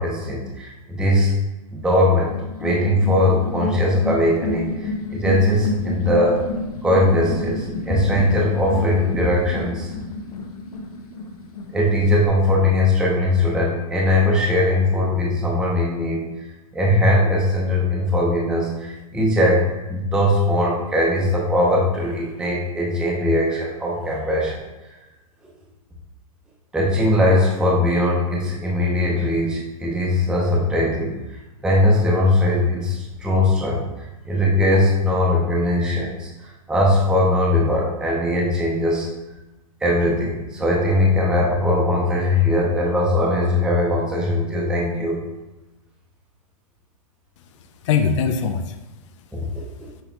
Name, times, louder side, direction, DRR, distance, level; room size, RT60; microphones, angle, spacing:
voice 1, 0.0-1.3 1.7-2.3 2.6-6.4 6.8-9.9 11.7-16.2 16.7-24.6 26.7-31.1 31.6-39.1 39.8-45.2 49.3-49.6, left 1 dB, 5° right, -3 dB, 0.6 m, -20 dB
sound 1, 2.3-12.3, left 2 dB, 80° left, 0.8 m, -30 dB
voice 2, 47.4-50.0, left 6 dB, 55° left, 7 dB, 0.4 m, -25 dB
5.9 x 3.2 x 2.8 m, 1.0 s
hypercardioid pair, 140°, 19 cm